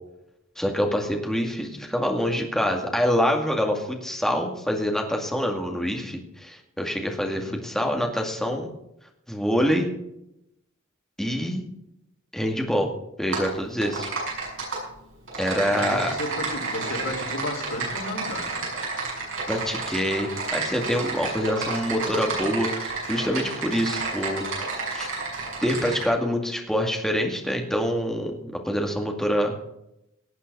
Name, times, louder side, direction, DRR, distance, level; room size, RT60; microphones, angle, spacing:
voice 1, 0.6-8.7 9.3-9.9 11.2-11.6 12.3-12.9 13.2-14.1 15.4-16.1 19.5-24.7 24.9-25.1 25.6-29.5, equal, ahead, 1 dB, 2.2 m, -26 dB
voice 2, 7.3-7.6 15.6-18.7, left 1 dB, 90° left, -1 dB, 3.4 m, -33 dB
Typing, 13.3-13.5 13.8-14.8 15.3-26.0, right 3 dB, 60° right, 6.9 m, -31 dB
18.5 x 8.3 x 5.4 m, 0.82 s
head